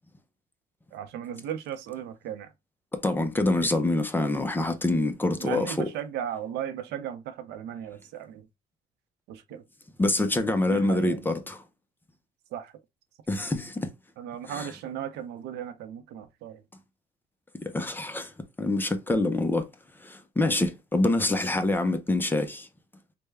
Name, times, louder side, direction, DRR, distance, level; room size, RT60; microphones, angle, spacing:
voice 1, 0.9-2.5 5.4-8.5 9.3-9.6 10.7-11.3 12.5-12.7 14.2-16.6, right 10 dB, 80° right, 0.6 m, -36 dB
voice 2, 3.0-5.9 10.0-11.6 13.3-13.9 14.5-14.7 17.6-18.3 18.6-19.7 20.0-22.7, left 2 dB, 10° left, 0.5 m, -26 dB
3.3 x 2.1 x 3.2 m
cardioid pair, 110°, 17 cm